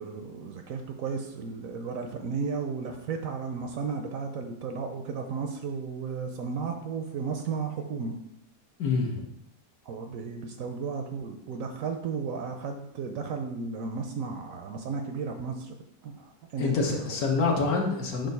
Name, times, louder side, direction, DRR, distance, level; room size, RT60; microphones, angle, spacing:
voice 1, 0.0-8.1 9.9-15.7 16.0-17.0, right 5 dB, 65° right, 5 dB, 0.9 m, -34 dB
voice 2, 8.8-9.3 16.6-18.3, left 4 dB, 65° left, 0 dB, 1.5 m, -26 dB
7.5 x 2.6 x 5.3 m, 0.81 s
omnidirectional pair, 1.7 m